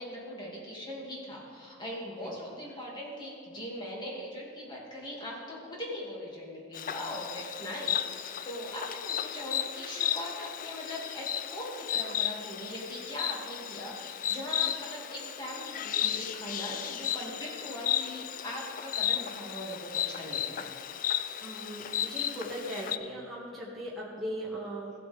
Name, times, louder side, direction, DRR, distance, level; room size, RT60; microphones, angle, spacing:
voice 1, 0.0-20.7, equal, 20° left, -4 dB, 2.4 m, -40 dB
Insect, 6.7-23.0, left 10 dB, 40° left, 0.4 m, -34 dB
voice 2, 21.4-24.9, equal, ahead, -7 dB, 1.9 m, -38 dB
16.5 x 7.7 x 3.5 m, 2.1 s
head